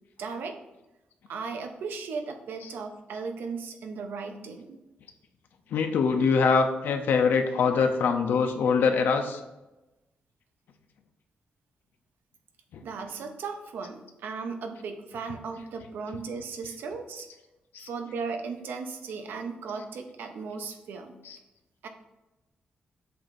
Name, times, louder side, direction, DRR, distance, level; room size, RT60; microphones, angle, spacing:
voice 1, 0.2-0.6 1.3-4.8 12.8-17.3 17.8-21.1 21.8-21.9, right 5 dB, 80° right, 5 dB, 0.8 m, -36 dB
voice 2, 5.7-9.4 12.7-12.8 17.7-17.9 21.2-21.4, left 5 dB, 75° left, 5 dB, 0.6 m, -24 dB
7.7 x 2.6 x 5.8 m, 1.0 s
wide cardioid pair, 175°, 3 cm